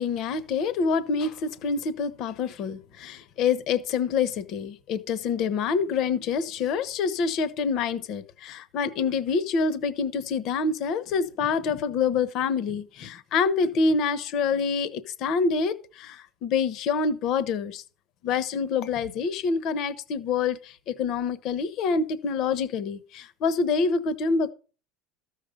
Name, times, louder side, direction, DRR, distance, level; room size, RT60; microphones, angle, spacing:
voice 1, 0.0-17.8 18.2-24.5, left 5 dB, 45° left, 1.1 m, -26 dB
13.5 x 6.7 x 5.3 m
cardioid pair, 155°, 0 cm